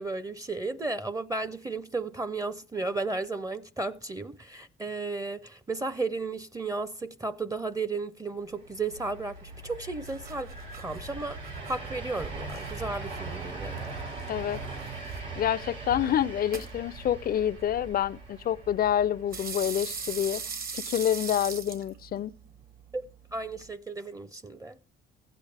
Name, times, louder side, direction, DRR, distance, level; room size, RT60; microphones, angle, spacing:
voice 1, 0.0-10.5 10.8-11.4 11.7-13.9 22.9-23.0 23.3-24.8, right 3 dB, 15° right, 0.5 m, -34 dB
sound 1, 8.5-20.4, right 3 dB, 85° right, 5.6 m, -41 dB
sound 2, 9.5-23.7, right 5 dB, 50° right, 1.1 m, -43 dB
voice 2, 14.3-14.6 15.4-20.4 20.7-22.3, left 10 dB, 50° left, 0.4 m, -27 dB
15.0 x 8.6 x 3.3 m
cardioid pair, 90°, 20 cm